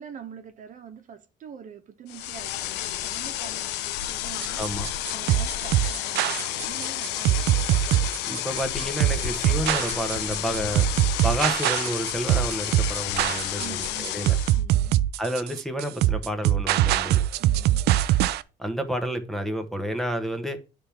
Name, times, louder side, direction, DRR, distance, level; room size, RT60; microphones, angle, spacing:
voice 1, 0.0-4.6 5.1-8.0 13.6-14.3 14.6-15.0 17.4-17.8, right 8 dB, 50° right, 1.1 m, -44 dB
sound 1, 2.1-14.6, left 13 dB, 90° left, 0.6 m, -31 dB
sound 2, 4.4-18.4, right 14 dB, 75° right, 0.4 m, -23 dB
voice 2, 8.3-10.8 11.2-14.3 15.2-17.2 18.6-20.6, equal, ahead, 1.0 m, -30 dB
9.6 x 3.6 x 5.8 m
cardioid pair, 110°, 17 cm